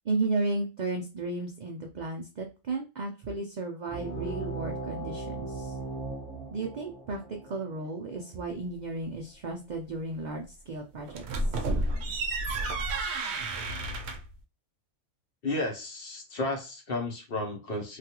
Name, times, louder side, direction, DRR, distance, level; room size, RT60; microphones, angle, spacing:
voice 1, 0.1-5.7 6.5-7.2 7.5-11.2, right 3 dB, 85° right, 2 dB, 0.4 m, -34 dB
sound 1, 3.9-9.0, right 3 dB, 15° right, 1.2 m, -38 dB
sound 2, 11.1-14.4, right 2 dB, 65° right, 0.8 m, -31 dB
voice 2, 15.4-18.0, left 2 dB, 50° left, 2 dB, 0.8 m, -33 dB
3.2 x 2.3 x 2.8 m, 0.30 s
omnidirectional pair, 1.4 m